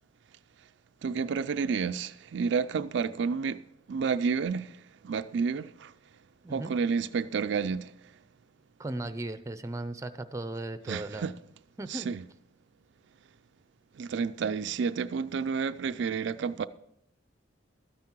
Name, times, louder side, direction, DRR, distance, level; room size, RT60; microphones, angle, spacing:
voice 1, 1.0-3.6 3.9-5.9 6.5-8.1 10.9-11.4 11.9-12.2 13.9-16.7, right 5 dB, 65° right, 0.4 m, -30 dB
voice 2, 8.8-11.3 11.8-12.1, right 2 dB, 15° right, 0.6 m, -36 dB
13.0 x 9.5 x 4.6 m
head